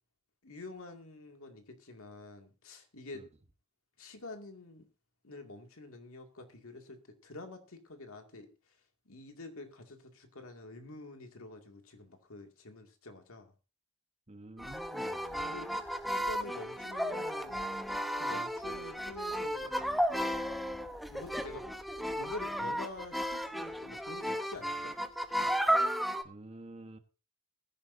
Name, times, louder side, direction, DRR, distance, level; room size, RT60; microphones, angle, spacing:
voice 1, 0.4-3.3 4.0-4.9 5.2-8.5 9.1-13.5 15.4-17.6 18.2-19.8 21.1-21.7 22.0-24.9, left 2 dB, 65° left, 2.3 m, -47 dB
voice 2, 14.3-15.4 26.2-27.0, right 1 dB, 30° right, 1.2 m, -49 dB
sound 1, 14.6-26.2, equal, ahead, 0.8 m, -34 dB
20.5 x 10.5 x 2.7 m
head